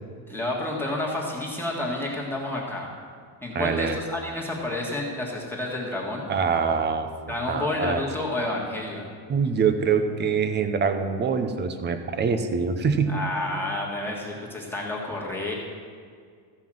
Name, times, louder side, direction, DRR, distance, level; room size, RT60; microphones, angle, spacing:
voice 1, 0.3-2.9 3.4-6.3 7.3-9.1 13.1-15.5, left 2 dB, 5° left, -3 dB, 1.6 m, -30 dB
voice 2, 3.5-4.0 6.3-7.1 7.5-8.0 9.3-13.1, right 6 dB, 20° right, 8 dB, 0.6 m, -24 dB
14.5 x 5.6 x 7.5 m, 2.1 s
cardioid pair, 160°, 49 cm